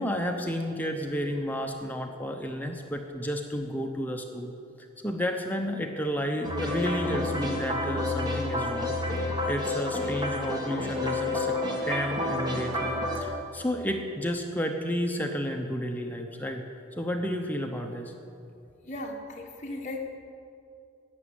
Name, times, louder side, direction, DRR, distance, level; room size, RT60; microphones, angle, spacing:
voice 1, 0.0-4.5 5.0-8.9 9.5-16.6 17.0-18.1, equal, 10° left, 3 dB, 0.7 m, -31 dB
sound 1, 6.4-13.2, left 2 dB, 20° right, 1.8 m, -30 dB
voice 2, 18.9-20.2, left 2 dB, 35° left, 0 dB, 1.6 m, -36 dB
11.5 x 8.7 x 9.8 m, 2.5 s
head